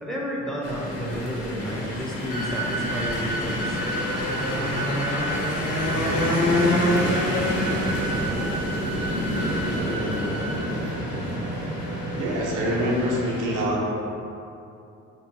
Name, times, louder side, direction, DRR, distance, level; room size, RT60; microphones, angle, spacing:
voice 1, 0.0-3.8, equal, ahead, -4 dB, 0.7 m, -31 dB
sound 1, 0.6-13.6, left 1 dB, 55° left, 0.8 m, -27 dB
sound 2, 2.3-10.6, right 2 dB, 85° left, 1.3 m, -33 dB
Fire, 5.6-13.2, right 2 dB, 55° right, 0.5 m, -33 dB
voice 2, 9.6-10.3 12.2-13.8, equal, 90° right, -4 dB, 0.8 m, -26 dB
3.7 x 2.2 x 4.3 m, 2.7 s
cardioid pair, 90°, 30 cm